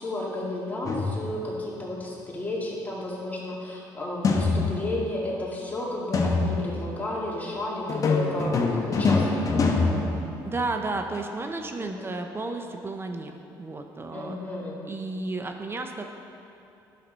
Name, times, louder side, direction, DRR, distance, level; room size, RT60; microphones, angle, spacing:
voice 1, 0.0-9.9 11.8-12.1 14.1-14.8, left 1 dB, 20° left, -5 dB, 2.1 m, -32 dB
sound 1, 0.9-1.5 4.2-5.1 6.1-6.9 7.9-10.8, left 3 dB, 40° left, 1.0 m, -25 dB
voice 2, 10.4-14.4 14.9-16.0, right 3 dB, 30° right, 5 dB, 0.6 m, -32 dB
10.5 x 5.9 x 4.0 m, 2.9 s
cardioid pair, 80°, 8 cm